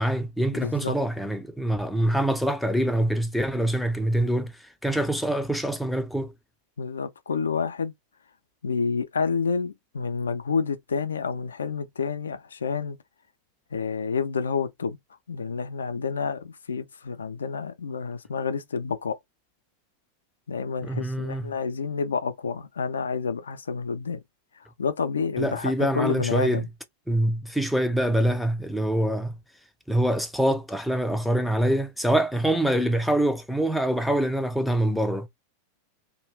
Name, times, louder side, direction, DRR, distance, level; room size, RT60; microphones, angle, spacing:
voice 1, 0.0-6.3 20.8-21.5 25.4-26.6 27.1-29.4 29.9-35.3, right 1 dB, ahead, 0.4 m, -25 dB
voice 2, 0.6-1.0 6.8-7.9 8.6-13.0 13.7-15.0 15.3-19.2 20.5-24.2 24.8-26.7, left 5 dB, 70° left, 0.4 m, -29 dB
2.3 x 2.2 x 3.2 m
figure-of-eight pair, 90°, 0 cm